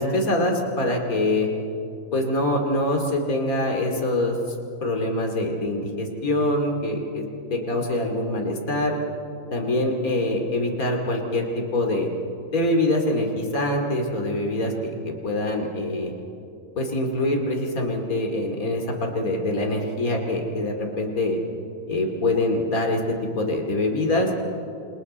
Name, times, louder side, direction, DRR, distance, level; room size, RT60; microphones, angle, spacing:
voice 1, 0.0-1.5 2.1-4.4 4.8-7.2 7.5-9.0 9.5-12.1 12.5-16.1 16.8-21.4 21.9-24.3, left 1 dB, 70° left, 2 dB, 3.0 m, -24 dB
28.0 x 28.0 x 4.3 m, 2.7 s
omnidirectional pair, 1.6 m